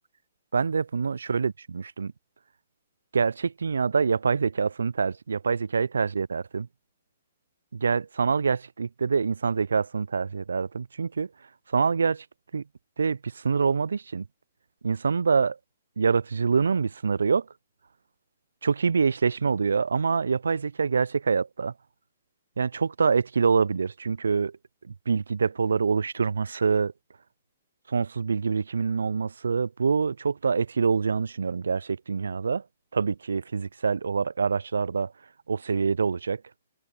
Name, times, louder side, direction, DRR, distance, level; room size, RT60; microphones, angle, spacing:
voice 1, 0.5-2.1 3.1-6.7 7.7-11.3 11.7-12.3 12.5-12.6 13.0-14.3 14.8-15.6 16.0-17.5 18.6-21.7 22.6-24.6 24.8-26.9 27.9-32.6 32.9-35.1 35.5-36.4, right 5 dB, 75° right, 0.3 m, -25 dB
open air
figure-of-eight pair, 120°, 0 cm